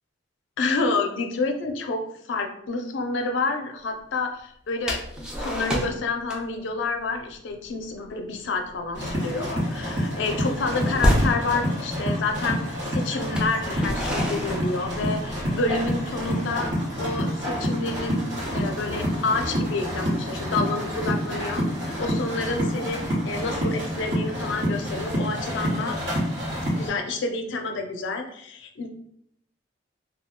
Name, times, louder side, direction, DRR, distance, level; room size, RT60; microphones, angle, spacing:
voice 1, 0.6-2.0 2.3-12.6 12.9-16.7 17.0-18.3 18.5-26.0 26.7-28.9, left 3 dB, 75° left, 4 dB, 0.4 m, -29 dB
sound 1, 4.9-6.0 6.3-6.6 6.9-7.2 7.6-7.8 8.1-8.4 8.7-11.4 12.3-12.4 13.2-15.5, equal, 5° right, 0.4 m, -28 dB
sound 2, 8.9-26.9, equal, 70° right, 1.1 m, -28 dB
2.2 x 2.1 x 3.5 m, 0.71 s
head